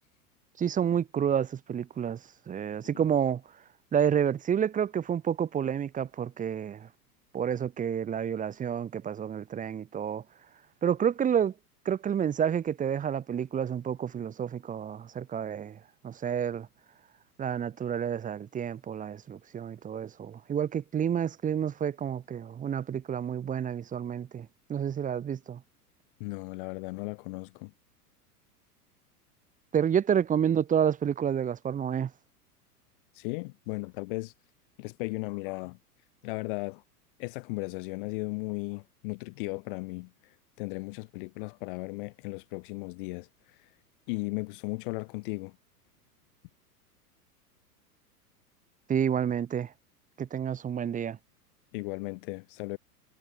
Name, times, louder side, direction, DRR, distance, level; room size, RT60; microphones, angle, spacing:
voice 1, 0.6-2.2 2.5-3.4 3.9-6.9 7.3-10.2 10.8-11.5 11.8-15.8 16.0-16.7 17.4-25.6 29.7-32.1 48.9-49.7 50.2-51.2, right 8 dB, 15° right, 1.3 m, -29 dB
voice 2, 26.2-27.7 33.1-34.3 34.8-35.8 36.2-36.8 37.2-43.7 44.1-45.6 51.7-52.8, left 27 dB, 35° left, 0.8 m, -36 dB
figure-of-eight pair, 95°, 47 cm